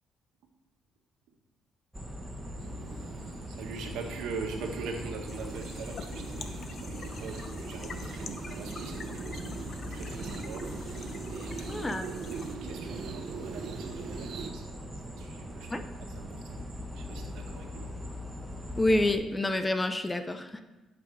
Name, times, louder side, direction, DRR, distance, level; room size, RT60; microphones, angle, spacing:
sound 1, 1.9-19.1, equal, 10° right, 1.2 m, -41 dB
sound 2, 2.6-14.5, right 5 dB, 65° right, 1.0 m, -42 dB
voice 1, 3.5-15.7 16.0-16.7 16.9-17.9, right 4 dB, 85° right, 2 dB, 1.7 m, -43 dB
sound 3, 5.3-12.6, left 5 dB, 45° left, 0.9 m, -47 dB
voice 2, 11.7-12.1 15.7-15.8 18.8-20.6, left 1 dB, 15° left, 9 dB, 0.7 m, -28 dB
14.5 x 6.0 x 4.9 m, 1.1 s
cardioid pair, 105°, 0 cm